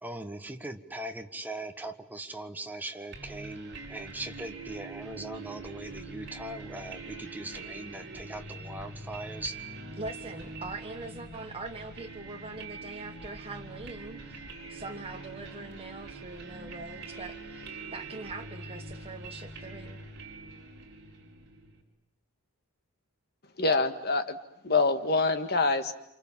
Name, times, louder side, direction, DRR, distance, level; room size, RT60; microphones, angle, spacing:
voice 1, 0.0-9.6, right 1 dB, 10° right, 6 dB, 1.4 m, -40 dB
sound 1, 3.1-21.8, right 3 dB, 50° right, 4.7 m, -44 dB
voice 2, 10.0-20.0, right 3 dB, 25° right, 3 dB, 1.4 m, -42 dB
voice 3, 23.6-24.4 24.6-25.9, left 3 dB, 45° left, 8 dB, 1.8 m, -25 dB
29.0 x 27.0 x 7.4 m, 0.78 s
head